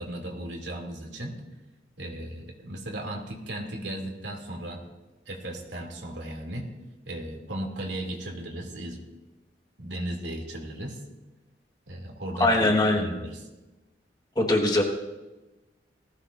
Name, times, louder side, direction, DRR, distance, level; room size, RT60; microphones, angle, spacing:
voice 1, 0.0-1.4 2.0-4.8 5.3-6.7 7.1-9.0 9.8-11.0 11.9-12.6 12.9-13.4, right 1 dB, 85° right, 0 dB, 2.7 m, -36 dB
voice 2, 12.4-13.0 14.3-14.8, left 2 dB, 25° left, 1 dB, 1.5 m, -21 dB
19.5 x 15.0 x 2.6 m, 1.1 s
head